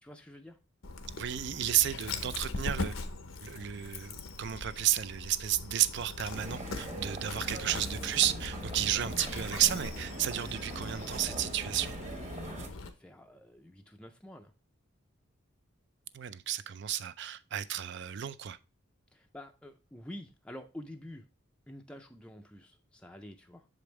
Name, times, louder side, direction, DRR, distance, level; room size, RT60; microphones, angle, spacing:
voice 1, 0.0-0.6 7.3-7.4 12.5-14.5 19.1-21.3 21.7-23.7, left 1 dB, 5° left, 0.4 m, -48 dB
Dog, 0.8-12.9, left 3 dB, 85° left, 0.8 m, -41 dB
voice 2, 1.2-2.9 3.4-12.0 16.1-18.6, right 11 dB, 60° right, 0.4 m, -32 dB
sound 1, 6.3-12.7, right 1 dB, 35° right, 1.2 m, -42 dB
6.9 x 5.1 x 3.2 m
head